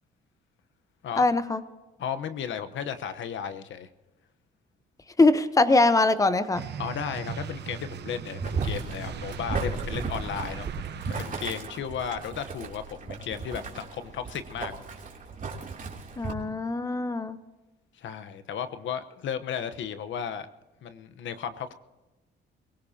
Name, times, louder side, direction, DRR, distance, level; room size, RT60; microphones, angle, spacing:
voice 1, 1.2-1.6 5.2-6.6 16.2-17.4, left 2 dB, 15° left, 12 dB, 0.9 m, -22 dB
voice 2, 2.0-3.9 6.8-10.7 11.2-14.7 17.9-20.5 20.8-21.7, left 8 dB, 70° left, 10 dB, 1.1 m, -34 dB
sound 1, 6.5-11.7, right 8 dB, 60° right, 0.9 m, -38 dB
Boiling, 8.4-16.3, right 4 dB, 45° right, 3.0 m, -35 dB
23.5 x 16.5 x 2.9 m, 1.1 s
cardioid pair, 90°, 20 cm